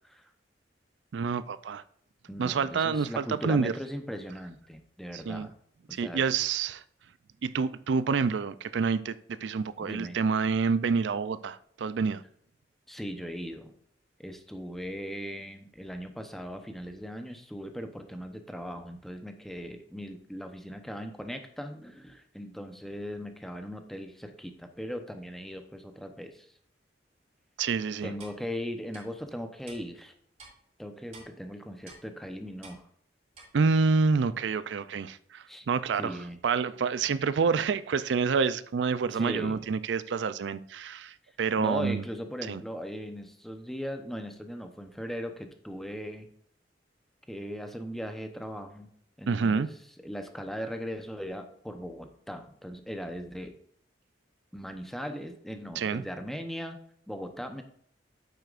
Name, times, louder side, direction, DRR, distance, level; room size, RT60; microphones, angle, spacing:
voice 1, 1.1-1.8 2.4-3.7 5.1-5.5 5.9-6.8 7.4-12.2 27.6-28.1 33.5-36.2 36.4-42.0 42.5-42.6 49.3-49.7 55.8-56.0, right 5 dB, 85° right, 0.4 m, -28 dB
voice 2, 2.3-5.5 5.9-6.2 9.8-10.2 12.9-13.7 14.2-26.5 28.0-30.1 30.8-32.8 35.5-35.7 36.0-36.4 39.1-39.6 41.6-46.3 47.3-48.9 49.2-49.7 50.0-53.5 54.5-56.8 57.1-57.6, equal, ahead, 0.8 m, -38 dB
Clock, 28.2-28.4 28.9-29.0 29.7-29.8 30.4-30.5 31.1-31.3 31.9-32.0 32.6-32.8 33.3-33.5, right 3 dB, 35° right, 3.2 m, -48 dB
9.0 x 8.0 x 2.5 m
head